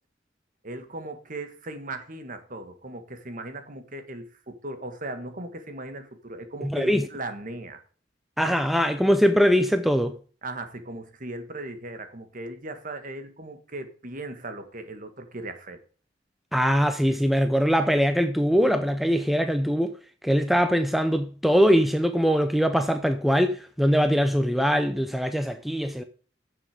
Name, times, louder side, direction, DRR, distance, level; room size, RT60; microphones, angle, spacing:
voice 1, 0.6-7.8 10.4-15.8, right 2 dB, 45° right, 1.7 m, -38 dB
voice 2, 6.6-7.1 8.4-10.1 16.5-19.9 20.2-26.0, equal, ahead, 0.6 m, -22 dB
9.8 x 7.6 x 5.0 m
head